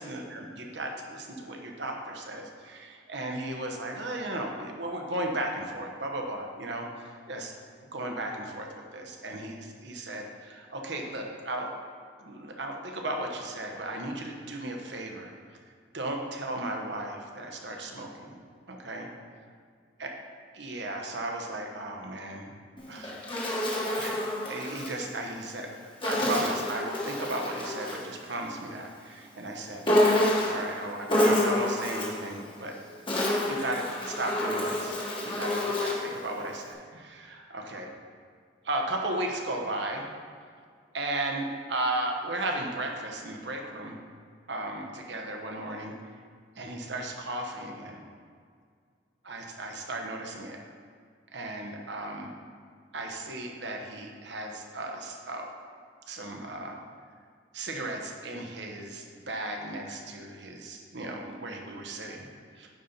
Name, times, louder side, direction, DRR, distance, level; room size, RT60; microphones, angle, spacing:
voice 1, 0.0-7.5 7.8-11.7 12.2-15.3 15.9-18.4 18.7-19.1 20.0-20.1 20.5-22.5 22.9-23.6 23.8-32.7 33.5-35.0 35.2-37.9 38.6-40.1 40.9-44.0 44.5-45.9 46.6-48.0 49.2-50.6 51.3-52.3 52.9-55.5 56.1-56.8 57.5-62.3 62.5-62.7, right 1 dB, 65° right, 2 dB, 1.0 m, -35 dB
Insect, 22.8-25.0 26.0-28.1 29.8-30.7 31.1-32.2 32.9-36.1, left 1 dB, 25° left, 1.2 m, -28 dB
9.4 x 4.3 x 5.2 m, 2.1 s
head